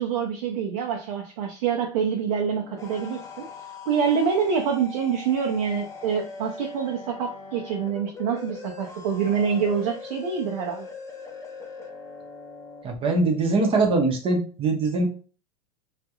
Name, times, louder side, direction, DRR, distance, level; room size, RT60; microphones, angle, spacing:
voice 1, 0.0-3.5 3.9-10.9, right 6 dB, 65° right, 1 dB, 0.6 m, -26 dB
sound 1, 2.4-12.8, left 4 dB, 15° left, 0.6 m, -41 dB
voice 2, 12.8-15.1, right 3 dB, 25° right, 2 dB, 0.7 m, -22 dB
2.3 x 2.1 x 2.9 m, 0.36 s
supercardioid pair, 125°, 20 cm